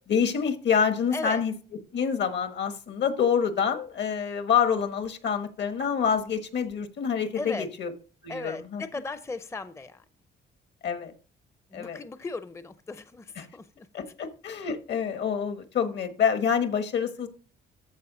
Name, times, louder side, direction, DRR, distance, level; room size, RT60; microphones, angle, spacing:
voice 1, 0.1-1.5 1.9-7.9 8.2-8.8 10.8-11.1 11.7-12.0 13.4-13.5 13.9-17.3, left 7 dB, 60° left, 9 dB, 1.3 m, -27 dB
voice 2, 1.1-1.4 7.4-7.7 8.3-10.0 11.7-13.9, left 3 dB, 15° left, 13 dB, 0.5 m, -37 dB
13.5 x 4.6 x 3.9 m, 0.38 s
cardioid pair, 90°, 20 cm